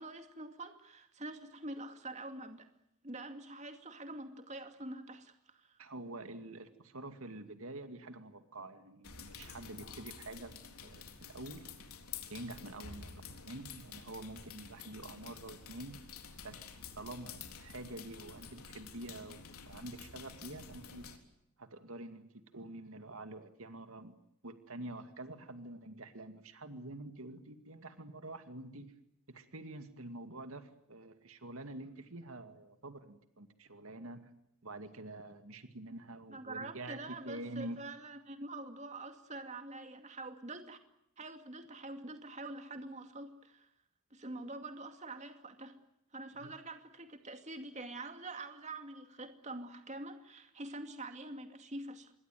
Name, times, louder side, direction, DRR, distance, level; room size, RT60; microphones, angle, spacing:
voice 1, 0.0-2.7 3.0-5.8 36.3-40.8 41.2-43.7 44.1-45.8 46.1-52.1, right 2 dB, 30° right, 7 dB, 2.5 m, -45 dB
voice 2, 5.8-11.7 12.3-16.0 16.4-16.6 17.0-21.1 21.6-24.2 24.4-28.9 29.3-34.3 34.6-37.8 46.4-46.5, right 2 dB, 70° right, 9 dB, 2.3 m, -47 dB
sound 1, 9.0-21.2, left 6 dB, 80° left, 3.7 m, -50 dB
27.0 x 22.5 x 9.3 m, 0.79 s
head